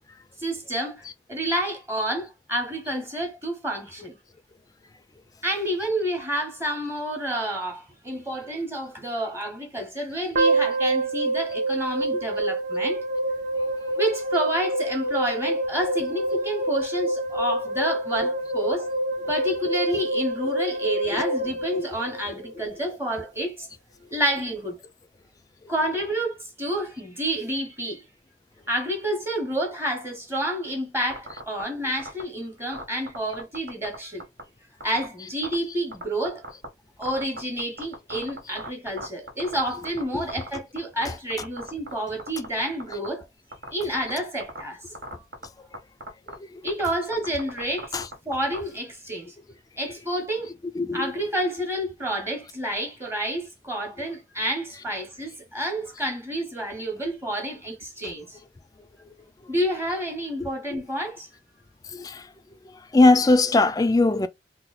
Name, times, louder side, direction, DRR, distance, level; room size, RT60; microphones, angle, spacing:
voice 1, 0.4-4.2 5.4-13.0 14.0-18.9 19.3-23.7 24.1-24.8 25.7-28.0 28.7-34.2 34.8-36.4 37.0-43.2 43.7-44.8 45.1-45.2 46.6-49.3 49.8-50.5 50.9-58.4 59.5-61.3, right 1 dB, 15° right, 0.9 m, -29 dB
sound 1, 10.3-22.6, right 1 dB, 45° right, 0.8 m, -27 dB
sound 2, 31.1-31.6 32.0-32.2 32.7-33.9 34.2-34.4 34.8-35.0 35.4-35.5 35.9-36.7 37.0-40.0 40.3-41.0 41.3-41.9 42.2-43.1 43.5-44.1 44.4-44.6 44.9-45.4 45.7-45.8 46.0-46.3 46.7-48.6, right 2 dB, 85° right, 1.4 m, -36 dB
voice 2, 50.8-51.1 62.9-64.3, left 2 dB, 20° left, 0.3 m, -19 dB
2.9 x 2.2 x 3.9 m
head